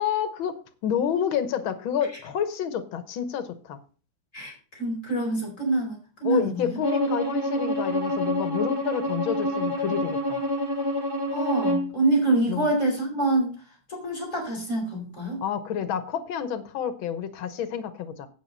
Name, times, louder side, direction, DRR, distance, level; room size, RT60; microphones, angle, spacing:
voice 1, 0.0-3.8 6.2-10.4 12.5-12.7 15.4-18.3, left 8 dB, 90° left, 12 dB, 1.8 m, -29 dB
voice 2, 4.3-6.8 11.3-13.5 13.9-15.4, right 2 dB, 40° left, 0 dB, 4.8 m, -26 dB
Bowed string instrument, 6.8-11.9, equal, 10° right, 1.9 m, -27 dB
8.5 x 8.4 x 5.4 m, 0.38 s
omnidirectional pair, 2.1 m